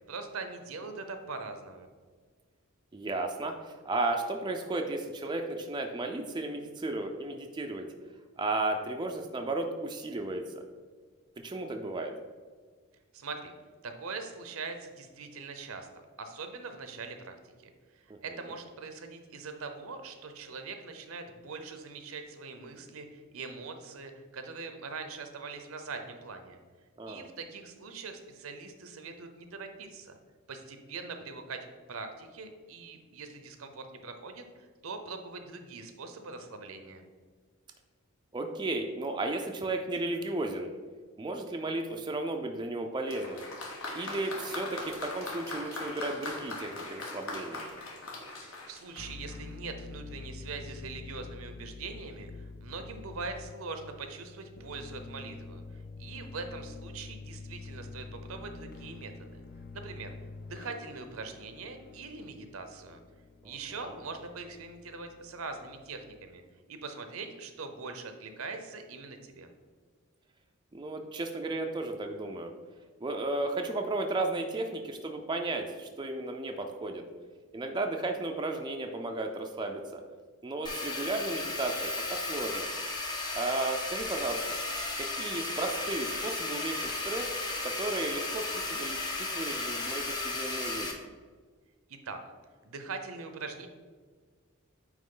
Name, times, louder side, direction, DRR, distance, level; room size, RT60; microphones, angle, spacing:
voice 1, 0.1-1.9 13.1-13.5 13.8-15.9 16.2-26.6 27.1-30.2 30.5-37.0 48.4-55.6 56.0-59.4 59.7-60.1 60.4-63.0 63.4-66.4 66.7-69.5 91.9-92.2 92.6-93.7, right 4 dB, 75° right, 7 dB, 0.7 m, -42 dB
voice 2, 2.9-7.9 8.4-10.4 11.4-12.1 18.1-18.2 27.0-27.3 38.3-40.7 41.2-43.4 43.9-47.6 63.4-63.6 63.8-64.0 70.7-72.5 73.0-77.0 77.5-80.0 80.4-82.7 83.3-84.6 85.0-87.3 87.6-91.0, right 2 dB, 20° right, 3 dB, 0.4 m, -34 dB
Applause, 43.1-49.6 50.5-50.6, left 2 dB, 70° left, 1.3 m, -40 dB
sound 1, 49.0-66.4, left 3 dB, 45° left, 0.3 m, -47 dB
sound 2, 80.6-90.9, left 2 dB, 20° left, 0.8 m, -34 dB
9.0 x 3.1 x 3.8 m, 1.5 s
head